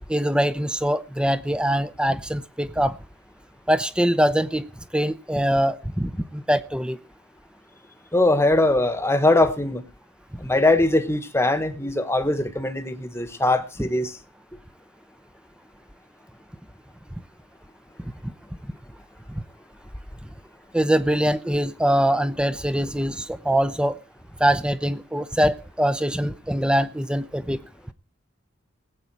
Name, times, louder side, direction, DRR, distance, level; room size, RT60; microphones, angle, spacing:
voice 1, 0.1-3.0 3.7-4.7 4.9-7.0 18.2-18.3 19.3-19.4 20.7-24.0 24.4-27.6, equal, 5° right, 0.7 m, -23 dB
voice 2, 8.1-9.8 10.4-14.1, left 2 dB, 15° left, 1.3 m, -21 dB
19.5 x 8.5 x 4.7 m
head